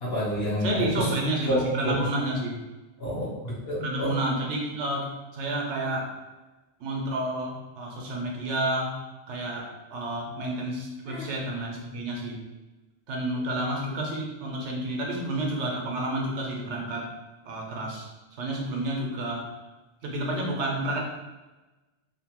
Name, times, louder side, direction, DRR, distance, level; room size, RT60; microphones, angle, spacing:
voice 1, 0.0-1.1 1.5-1.9 3.0-4.2 11.1-11.3, left 1 dB, 60° left, -5 dB, 1.0 m, -29 dB
voice 2, 0.6-2.6 3.8-6.2 6.8-12.4 13.1-17.1 17.4-18.1 18.4-19.5 20.0-21.0, right 1 dB, 85° right, -1 dB, 1.0 m, -30 dB
2.8 x 2.1 x 2.9 m, 1.1 s
omnidirectional pair, 1.2 m